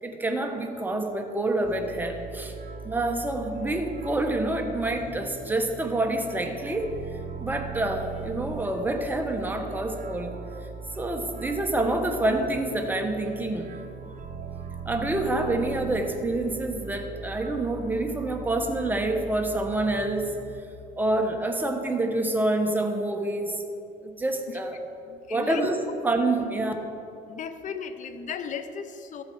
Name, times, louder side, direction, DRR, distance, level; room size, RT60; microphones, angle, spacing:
voice 1, 0.0-2.5 2.8-6.9 7.4-10.3 11.0-13.7 14.9-20.3 20.9-23.6 24.0-24.8 25.3-25.8 26.0-26.7, right 2 dB, 10° right, 4 dB, 1.1 m, -27 dB
sound 1, 1.6-20.6, right 6 dB, 50° right, 0.9 m, -40 dB
voice 2, 24.7-25.7 27.3-29.2, left 7 dB, 50° left, 10 dB, 0.7 m, -36 dB
13.5 x 7.7 x 4.6 m, 2.8 s
cardioid pair, 110°, 17 cm